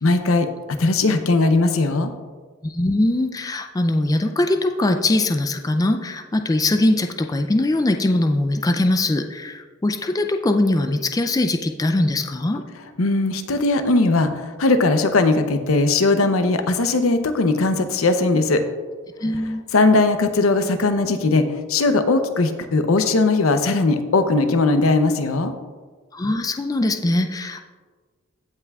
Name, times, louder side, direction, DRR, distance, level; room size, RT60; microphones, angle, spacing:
voice 1, 0.0-0.5 0.8-2.1 13.0-18.6 19.7-25.5, left 3 dB, 85° left, 8 dB, 0.7 m, -19 dB
voice 2, 2.6-12.6 19.2-19.7 26.1-27.6, left 1 dB, 15° left, 6 dB, 0.4 m, -21 dB
16.0 x 5.7 x 2.4 m, 1.4 s
head